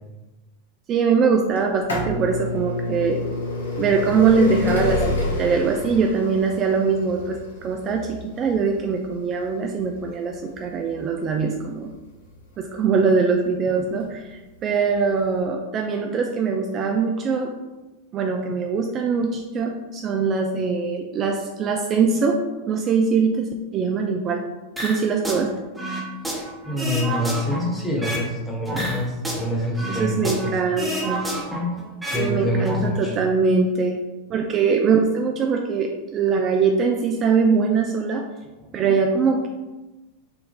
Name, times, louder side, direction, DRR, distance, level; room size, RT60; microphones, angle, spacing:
voice 1, 0.9-3.2 3.8-11.9 12.6-17.5 18.1-24.4 24.8-25.5 29.9-31.2 32.1-34.0 34.3-38.3 38.7-39.5, right 5 dB, 35° right, 3 dB, 0.4 m, -22 dB
sound 1, 1.6-13.2 14.0-14.1 15.1-15.2 15.4-15.5, left 2 dB, 75° left, 0.8 m, -29 dB
sound 2, 24.8-25.4 25.8-28.3 28.7-30.5 30.8-32.3 32.5-32.8, right 1 dB, 5° right, 1.0 m, -29 dB
voice 2, 26.3-30.5 32.0-33.1 38.6-38.8, left 1 dB, 10° left, -3 dB, 1.3 m, -26 dB
4.5 x 2.5 x 3.5 m, 1.1 s
figure-of-eight pair, 90°, 0 cm